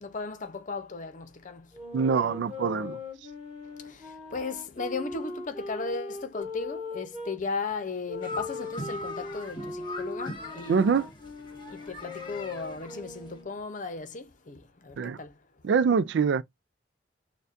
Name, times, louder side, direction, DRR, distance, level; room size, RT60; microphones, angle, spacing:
voice 1, 0.0-1.6 4.3-11.0 11.7-15.3, left 4 dB, 45° left, 0.8 m, -36 dB
sound 1, 1.7-7.4 8.1-13.6, left 3 dB, 5° right, 2.6 m, -40 dB
voice 2, 1.9-3.0 10.7-11.1 15.0-15.2 15.6-16.4, right 6 dB, 70° right, 0.3 m, -24 dB
sound 2, 8.2-13.4, left 1 dB, 25° left, 1.3 m, -41 dB
6.6 x 2.3 x 2.6 m
head